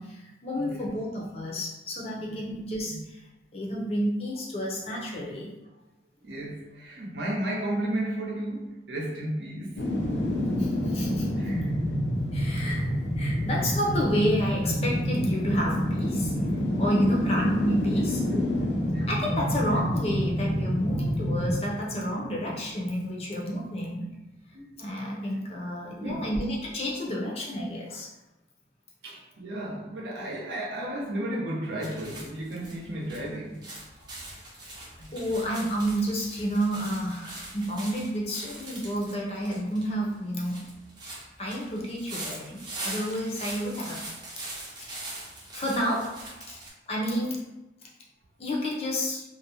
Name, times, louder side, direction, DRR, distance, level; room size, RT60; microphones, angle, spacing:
voice 1, 0.0-3.0 3.5-5.5 10.6-11.3 12.3-16.3 16.8-18.2 19.1-24.1 24.8-28.1 34.6-34.8 35.1-40.7 41.4-44.0 44.8-44.9 45.5-46.1 46.5-46.6 46.9-47.4 48.4-49.2, equal, 35° left, -3 dB, 0.5 m, -30 dB
voice 2, 0.6-1.0 2.2-2.5 2.8-3.0 6.2-9.9 11.4-11.7 16.7-16.8 18.3-18.7 18.9-19.1 24.5-24.8 25.3-26.4 29.0-33.7 33.9-34.4 35.0-35.1, right 1 dB, 85° right, -2 dB, 0.6 m, -34 dB
sound 1, 9.8-22.8 23.2-23.3, equal, 85° left, 0.5 m, -28 dB
sound 2, 31.8-46.7, right 2 dB, 25° right, 0.5 m, -42 dB
2.5 x 2.1 x 2.8 m, 1.0 s
head